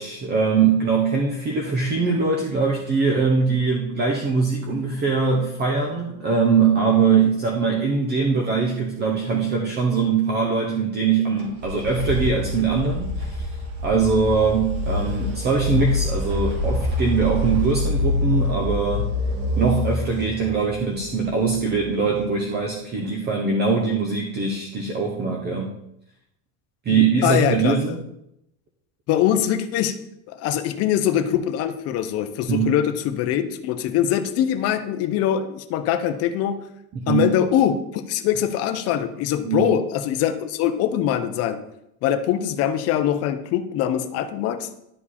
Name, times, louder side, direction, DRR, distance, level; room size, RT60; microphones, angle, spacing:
voice 1, 0.0-13.5 13.8-19.1 19.6-25.7 26.8-28.0 32.5-32.7 36.9-37.2 39.4-39.7, right 5 dB, 20° right, 0 dB, 0.8 m, -22 dB
sound 1, 11.4-22.2, left 2 dB, 60° right, 2.6 m, -26 dB
voice 2, 26.9-27.8 29.1-30.0 30.3-36.6 37.1-41.6 42.0-44.7, left 10 dB, 30° left, 8 dB, 0.7 m, -23 dB
11.0 x 4.9 x 4.2 m, 0.80 s
cardioid pair, 170°, 46 cm